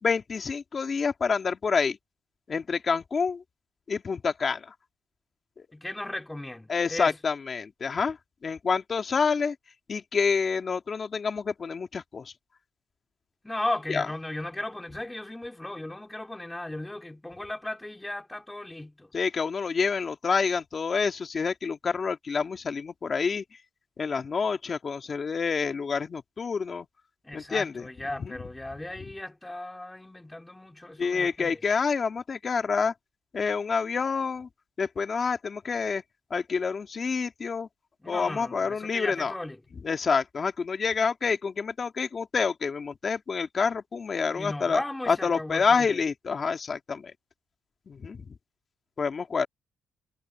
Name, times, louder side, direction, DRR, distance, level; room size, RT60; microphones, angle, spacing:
voice 1, 0.0-2.0 2.5-3.4 3.9-4.7 6.7-8.2 8.4-9.6 9.9-12.3 13.9-14.1 19.1-23.4 24.0-26.9 27.3-28.4 31.0-32.9 33.3-34.5 34.8-36.0 36.3-37.7 38.1-39.3 39.8-44.8 45.1-47.1 47.9-48.3 49.0-49.5, left 5 dB, 30° left, 2.3 m, -28 dB
voice 2, 5.7-7.2 13.4-19.1 27.2-31.6 38.0-39.6 44.3-46.0, left 1 dB, 10° left, 3.8 m, -36 dB
cardioid pair, 130°, 0 cm